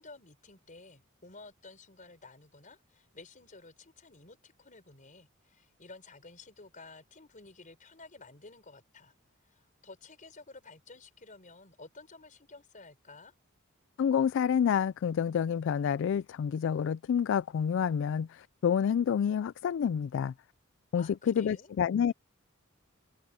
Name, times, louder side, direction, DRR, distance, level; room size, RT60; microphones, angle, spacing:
voice 1, 0.0-9.1 9.4-13.3 21.0-21.7, left 3 dB, 40° left, 5.0 m, -52 dB
voice 2, 14.0-20.3 20.9-22.1, left 7 dB, 60° left, 0.3 m, -28 dB
head